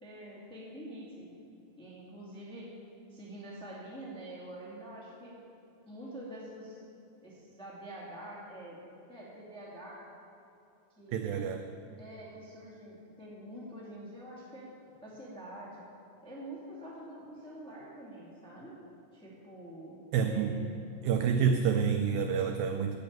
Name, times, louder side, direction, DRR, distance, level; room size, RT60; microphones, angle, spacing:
voice 1, 0.0-1.5 1.8-2.7 3.1-5.4 5.8-6.8 7.2-10.0 11.0-11.5 12.0-14.7 15.0-15.8 16.2-18.8 19.1-19.9 20.2-20.7, right 1 dB, ahead, -6 dB, 1.4 m, -46 dB
voice 2, 11.1-11.7 20.1-20.6 21.0-23.0, right 6 dB, 85° right, 7 dB, 2.0 m, -28 dB
12.5 x 6.2 x 8.9 m, 2.7 s
omnidirectional pair, 4.6 m